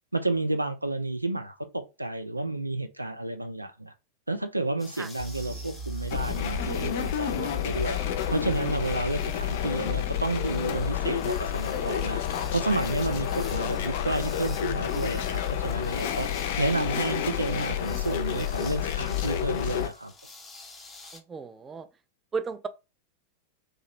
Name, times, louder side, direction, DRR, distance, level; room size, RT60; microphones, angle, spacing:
voice 1, 0.1-3.9 4.3-8.0 8.3-12.2 12.5-16.3 16.6-20.1, right 2 dB, 85° right, 0.4 m, -30 dB
sound 1, 4.8-21.2, left 3 dB, 10° left, 0.7 m, -49 dB
sound 2, 5.2-13.8 14.1-14.3 14.7-14.8, right 3 dB, 70° right, 0.9 m, -43 dB
sound 3, 6.1-19.9, left 10 dB, 50° left, 0.4 m, -30 dB
voice 2, 21.1-21.9 22.3-22.7, right 5 dB, 20° right, 0.4 m, -34 dB
2.8 x 2.5 x 3.0 m
figure-of-eight pair, 90°, 0 cm